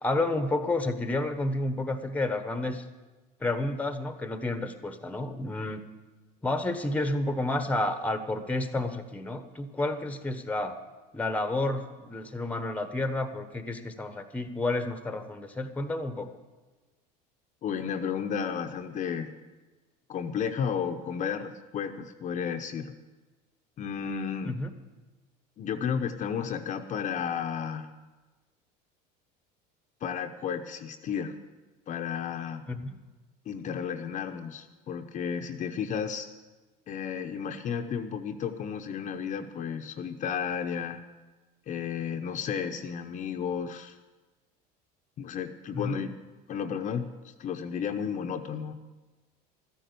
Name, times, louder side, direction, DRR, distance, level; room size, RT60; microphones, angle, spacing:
voice 1, 0.0-2.8 3.4-5.8 6.4-10.8 11.1-16.3 24.4-24.7 32.7-33.0 45.7-46.0, left 2 dB, 10° left, 9 dB, 1.1 m, -30 dB
voice 2, 17.6-19.3 20.1-22.9 23.8-24.5 25.6-27.9 30.0-31.4 31.9-32.6 33.5-36.3 36.9-41.0 41.7-44.0 45.2-46.2 46.5-48.7, left 7 dB, 40° left, 5 dB, 0.8 m, -33 dB
13.5 x 10.0 x 6.8 m, 1.2 s
supercardioid pair, 115°, 19 cm